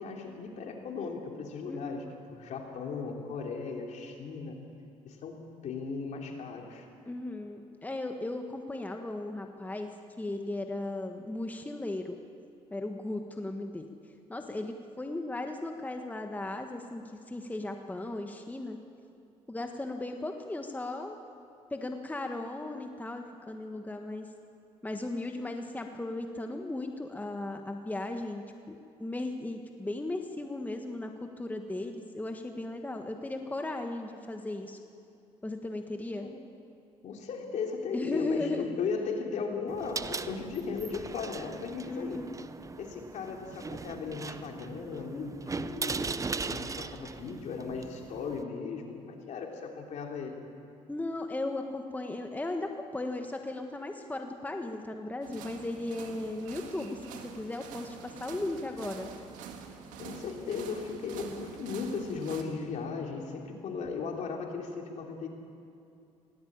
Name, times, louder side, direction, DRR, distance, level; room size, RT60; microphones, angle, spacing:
voice 1, 0.0-4.5 5.0-6.9 36.2-36.4 37.0-42.3 42.8-50.4 60.0-65.3, left 5 dB, 65° left, 1 dB, 3.1 m, -37 dB
voice 2, 1.7-2.0 7.1-9.9 10.2-12.2 12.7-13.9 14.3-18.8 19.5-21.1 21.7-24.3 24.8-31.1 31.4-34.8 35.4-36.3 37.9-38.6 41.9-42.4 50.9-59.1, left 2 dB, 10° left, 4 dB, 1.4 m, -36 dB
sound 1, 39.7-48.4, right 4 dB, 25° right, 0.7 m, -39 dB
sound 2, 55.2-62.4, right 7 dB, 90° right, 1.8 m, -46 dB
18.0 x 17.5 x 8.8 m, 2.6 s
cardioid pair, 80°, 13 cm